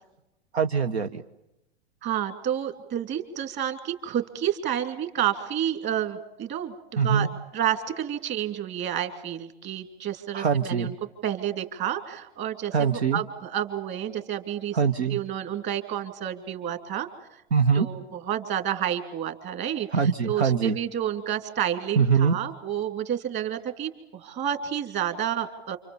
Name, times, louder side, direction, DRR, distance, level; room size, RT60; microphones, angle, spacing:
voice 1, 0.5-1.2 7.0-7.3 10.3-10.9 12.7-13.2 14.7-15.2 17.5-17.9 19.9-20.8 22.0-22.4, right 6 dB, 80° right, 8 dB, 1.1 m, -23 dB
voice 2, 2.0-7.3 7.5-10.9 11.2-14.8 15.1-17.4 17.7-25.8, right 10 dB, 35° right, 7 dB, 2.9 m, -30 dB
28.5 x 26.0 x 7.2 m, 0.90 s
hypercardioid pair, 105°, 32 cm